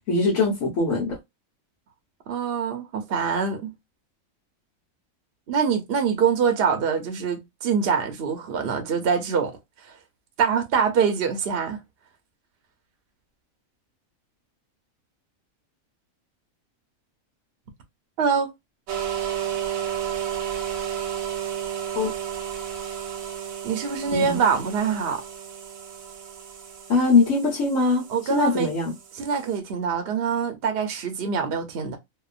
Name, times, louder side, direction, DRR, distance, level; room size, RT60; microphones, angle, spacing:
voice 1, 0.1-1.2 21.9-22.1 24.1-24.4 26.9-28.9, left 3 dB, 75° left, 1.2 m, -22 dB
voice 2, 2.3-3.7 5.5-9.6 10.4-11.8 18.2-18.5 23.6-25.2 28.1-28.7 29.1-32.0, right 6 dB, 55° right, 0.8 m, -24 dB
sound 1, 18.9-29.6, right 10 dB, 80° right, 1.1 m, -33 dB
2.8 x 2.2 x 2.3 m
omnidirectional pair, 1.4 m